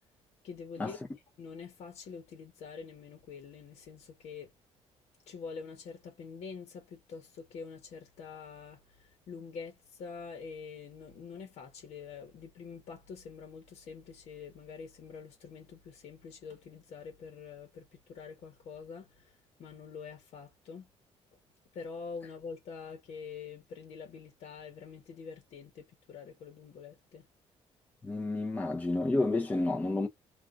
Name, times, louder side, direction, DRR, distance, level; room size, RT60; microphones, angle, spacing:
voice 1, 0.4-4.5 5.3-19.3 19.6-20.9 21.7-27.3, left 5 dB, 70° left, 1.1 m, -46 dB
voice 2, 28.0-30.1, left 2 dB, 15° left, 0.8 m, -30 dB
2.5 x 2.3 x 3.8 m
cardioid pair, 145°, 11 cm